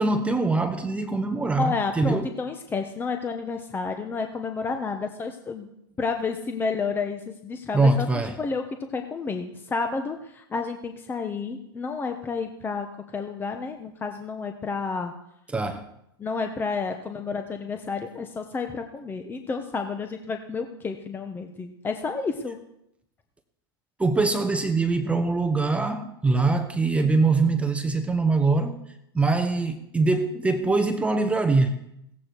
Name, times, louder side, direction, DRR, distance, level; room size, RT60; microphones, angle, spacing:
voice 1, 0.0-2.3 7.7-8.4 15.5-15.9 24.0-28.8 29.1-31.8, right 3 dB, 10° right, 1.0 m, -23 dB
voice 2, 1.6-5.7 6.0-8.1 8.4-8.6 8.9-12.9 13.1-15.1 16.2-22.6, left 4 dB, 15° left, 1.1 m, -30 dB
17.0 x 14.5 x 4.7 m
hypercardioid pair, 120°, 13 cm